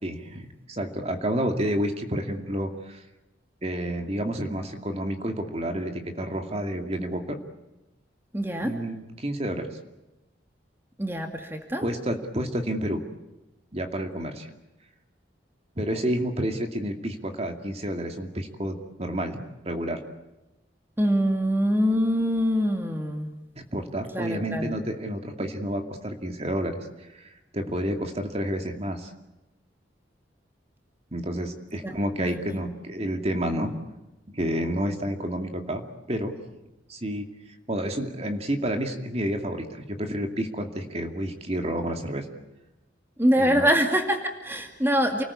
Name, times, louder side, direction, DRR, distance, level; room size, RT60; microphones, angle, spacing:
voice 1, 0.0-3.0 3.6-7.4 8.6-9.7 11.8-13.0 13.7-14.5 15.8-19.4 19.6-20.0 23.6-26.8 27.1-29.1 31.1-33.7 34.3-35.8 36.1-36.3 36.9-37.3 37.7-42.3 43.4-43.7, equal, 35° right, 5 dB, 2.4 m, -30 dB
voice 2, 8.3-8.7 11.0-11.8 21.0-23.3 24.1-24.7 31.8-31.9 32.2-32.6 43.2-45.2, equal, 10° right, 4 dB, 2.2 m, -24 dB
29.0 x 20.0 x 8.5 m, 0.99 s
head